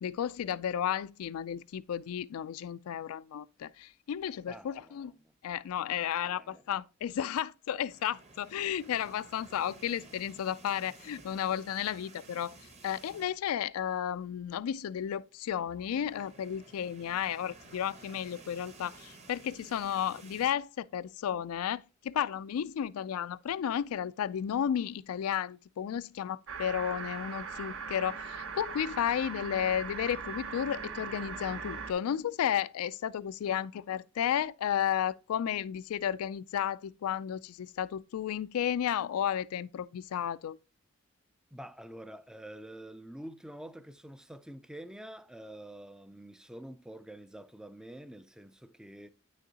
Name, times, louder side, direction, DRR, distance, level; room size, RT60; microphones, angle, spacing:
voice 1, 0.0-5.2 5.4-12.6 12.8-40.6, left 9 dB, 90° left, 0.3 m, -33 dB
voice 2, 4.5-5.3 5.7-6.6 33.4-33.6 41.5-49.1, right 1 dB, 5° right, 0.3 m, -47 dB
sound 1, 7.8-13.6 13.9-14.1 14.4-14.5 15.5-20.6, right 3 dB, 30° right, 0.9 m, -54 dB
sound 2, 26.5-31.9, right 5 dB, 65° right, 0.8 m, -40 dB
9.2 x 6.3 x 2.8 m
head